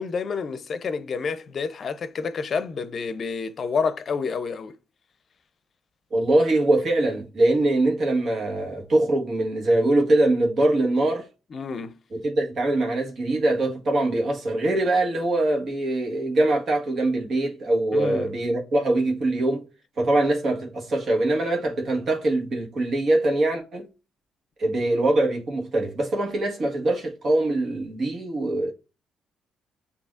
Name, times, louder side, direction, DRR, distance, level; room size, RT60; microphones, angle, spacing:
voice 1, 0.0-4.7 11.5-12.0 17.9-18.3, left 5 dB, 50° left, 0.6 m, -29 dB
voice 2, 6.1-11.3 12.2-19.7 20.0-23.8 24.6-28.7, right 2 dB, 55° right, 1.5 m, -23 dB
6.8 x 2.8 x 2.4 m
cardioid pair, 90°, 0 cm